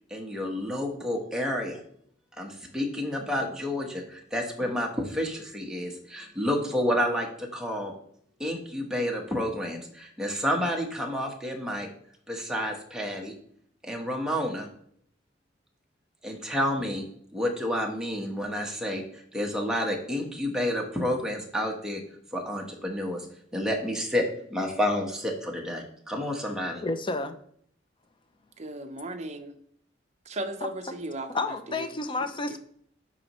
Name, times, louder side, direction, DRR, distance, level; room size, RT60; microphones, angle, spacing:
voice 1, 0.1-1.8 2.4-7.9 8.4-11.9 12.3-13.3 13.8-14.7 16.2-17.0 17.3-22.0 22.3-23.3 23.5-24.3 24.5-26.8, left 1 dB, 5° right, 0 dB, 1.1 m, -30 dB
voice 2, 26.8-27.4 31.3-32.6, left 3 dB, 25° left, 9 dB, 0.5 m, -30 dB
voice 3, 28.6-29.6 30.2-31.9 32.5-32.6, right 1 dB, 35° right, 7 dB, 0.7 m, -36 dB
10.5 x 4.2 x 3.0 m, 0.65 s
head